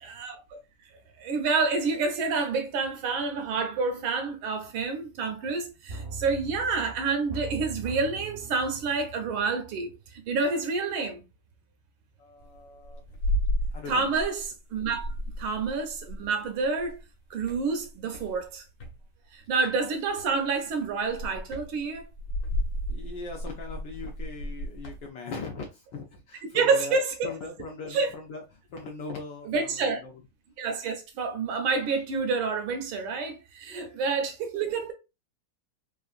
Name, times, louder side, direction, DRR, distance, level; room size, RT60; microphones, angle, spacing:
voice 1, 0.0-0.6 1.2-11.2 13.9-17.0 17.3-18.6 19.3-22.1 26.5-27.4 27.9-28.1 29.4-30.0 30.6-34.9, right 4 dB, 75° right, 1.4 m, -28 dB
sound 1, 5.9-10.6 10.9-11.0, right 3 dB, 45° right, 0.7 m, -41 dB
voice 2, 12.2-13.0 13.7-14.1 22.9-27.0 27.2-30.2 33.7-34.2 34.6-34.7, left 3 dB, 75° left, 1.0 m, -40 dB
sound 2, 12.4-14.5 14.8-17.0 17.4-19.0 20.1-20.4 20.8-25.1, equal, 55° left, 1.2 m, -33 dB
3.6 x 2.4 x 2.4 m
omnidirectional pair, 2.4 m